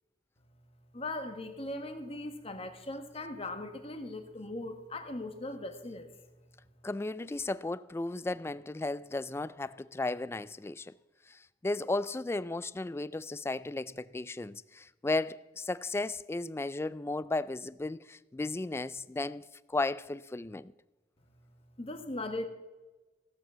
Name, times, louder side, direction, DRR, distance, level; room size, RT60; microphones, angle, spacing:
voice 1, 0.9-6.1 21.8-22.5, left 2 dB, 35° left, 1.4 m, -39 dB
voice 2, 6.8-10.9 11.3-20.7, left 2 dB, 15° left, 0.3 m, -35 dB
16.0 x 7.2 x 7.4 m
head